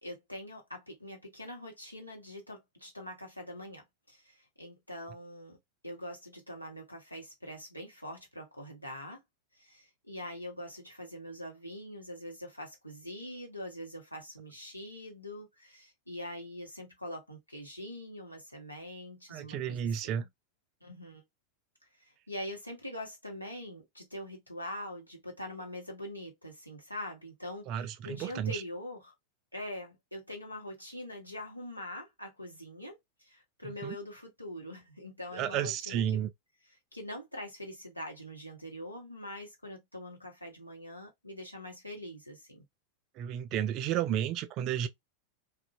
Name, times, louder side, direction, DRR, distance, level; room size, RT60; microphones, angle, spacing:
voice 1, 0.0-5.6 5.8-9.2 9.6-20.3 20.8-21.2 22.1-29.1 29.5-36.3 36.7-42.6, left 1 dB, 85° left, 0.8 m, -43 dB
voice 2, 19.3-20.2 27.7-28.6 33.6-34.0 35.3-36.3 43.2-44.9, right 10 dB, 40° right, 0.3 m, -32 dB
2.5 x 2.1 x 2.4 m
figure-of-eight pair, 90°, 0 cm